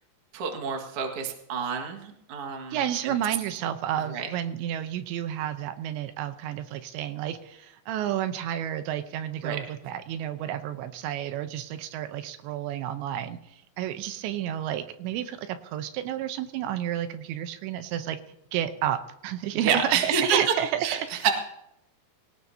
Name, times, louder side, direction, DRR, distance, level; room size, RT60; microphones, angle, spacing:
voice 1, 0.3-3.1 4.1-4.3 9.4-9.6 19.5-20.4 20.8-21.3, right 6 dB, 50° right, 3 dB, 1.8 m, -28 dB
voice 2, 2.7-18.2 18.5-21.1, right 11 dB, 85° right, 9 dB, 3.1 m, -31 dB
24.0 x 17.5 x 2.8 m, 0.82 s
omnidirectional pair, 5.2 m